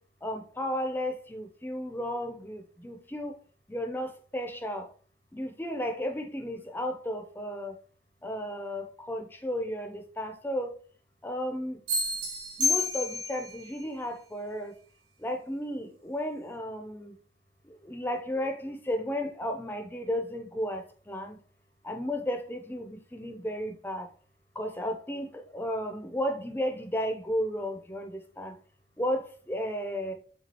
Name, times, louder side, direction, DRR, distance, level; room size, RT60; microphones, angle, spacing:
voice 1, 0.2-3.4 3.7-4.9 5.3-7.8 8.2-10.7 11.2-11.8 12.6-14.8 15.2-17.2 17.6-21.4 21.8-24.1 24.6-28.6 29.0-30.1, equal, 10° left, 0.5 m, -34 dB
sound 1, 11.9-13.5, left 3 dB, 90° right, 2.1 m, -29 dB
6.0 x 2.3 x 2.8 m
head